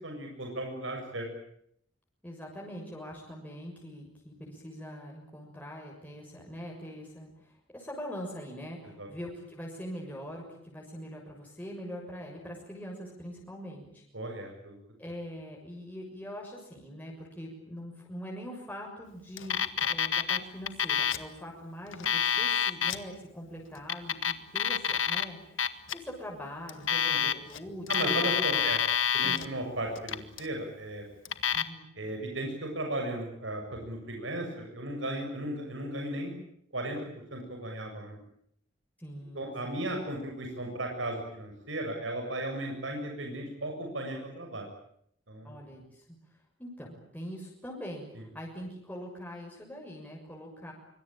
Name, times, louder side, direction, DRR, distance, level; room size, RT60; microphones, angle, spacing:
voice 1, 0.0-1.3 9.0-9.1 14.1-14.8 26.9-27.3 27.9-28.8 29.1-31.0 32.0-36.3 36.7-37.0 37.3-38.2 39.3-44.7 45.3-45.6, right 1 dB, 75° right, 2 dB, 7.4 m, -35 dB
voice 2, 2.2-14.0 15.0-28.7 29.2-29.6 31.5-32.2 39.0-39.9 45.4-50.7, equal, 10° left, -2 dB, 6.7 m, -43 dB
Alarm, 19.4-20.4 20.7-21.3 21.9-23.0 23.8-25.2 25.6-25.9 26.7-27.6 27.9-29.5 30.0-30.5 31.2-31.6, left 8 dB, 85° left, 1.8 m, -28 dB
25.5 x 25.0 x 9.0 m, 0.70 s
head